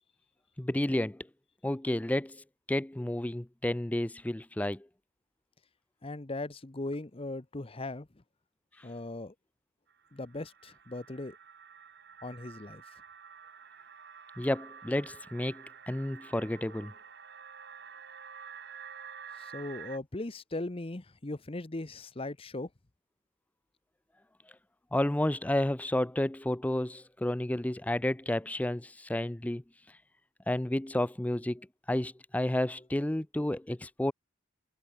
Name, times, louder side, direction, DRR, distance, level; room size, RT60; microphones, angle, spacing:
voice 1, 0.6-1.3 1.6-2.4 2.7-4.9 14.4-16.9 24.9-29.6 30.5-34.1, left 1 dB, 5° left, 0.4 m, -31 dB
voice 2, 6.0-8.1 8.8-9.3 10.1-11.4 12.2-12.8 19.4-22.7, left 2 dB, 25° left, 0.8 m, -38 dB
sound 1, 9.9-20.0, right 7 dB, 55° right, 6.9 m, -49 dB
head